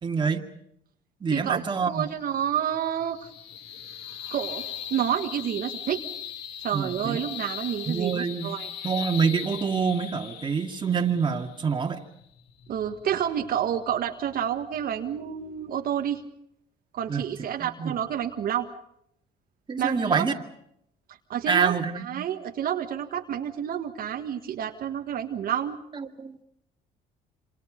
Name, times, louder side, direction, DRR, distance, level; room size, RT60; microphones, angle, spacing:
voice 1, 0.0-0.5 1.2-2.1 6.7-7.2 7.9-8.5 8.8-12.0 17.1-17.9 19.7-20.3 21.5-22.3 25.9-26.4, right 6 dB, 30° right, 4 dB, 2.3 m, -27 dB
voice 2, 1.3-3.3 4.3-4.6 4.9-6.0 6.6-8.7 12.7-16.2 16.9-18.7 19.8-20.3 21.3-25.8, right 9 dB, 60° right, 4 dB, 1.6 m, -29 dB
sound 1, 1.6-14.2, left 10 dB, 80° left, 2.1 m, -40 dB
27.5 x 26.5 x 5.2 m, 0.75 s
cardioid pair, 110°, 17 cm